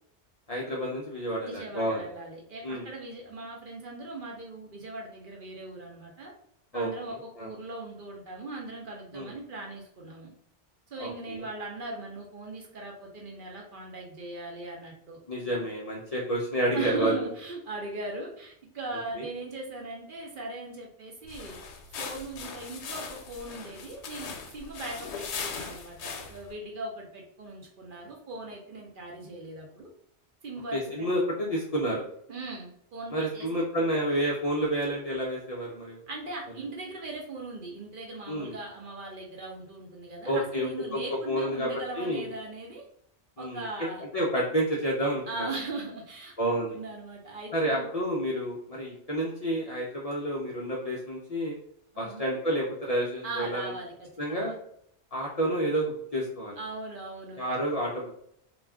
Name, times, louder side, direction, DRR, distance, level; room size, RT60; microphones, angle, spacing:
voice 1, 0.5-2.0 2.6-2.9 6.7-6.9 7.4-7.5 9.1-9.3 11.0-11.4 15.3-17.2 19.2-19.3 30.7-32.0 33.1-36.0 38.3-38.5 40.3-41.0 41.3-42.3 43.4-43.9 44.1-45.5 46.4-46.7 47.5-51.5 52.0-53.7 54.2-54.5 55.1-56.6 57.4-58.1, right 1 dB, 55° left, -4 dB, 0.4 m, -29 dB
voice 2, 1.4-6.3 6.7-10.3 10.9-15.6 16.7-21.6 22.0-29.9 30.4-31.1 32.3-33.5 36.1-42.8 43.4-44.0 45.3-47.8 51.9-52.3 53.2-54.5 56.6-57.4, right 2 dB, 55° right, -1 dB, 0.6 m, -39 dB
sound 1, 21.3-26.5, left 5 dB, 75° left, 0.8 m, -39 dB
2.4 x 2.1 x 3.4 m, 0.71 s
omnidirectional pair, 1.2 m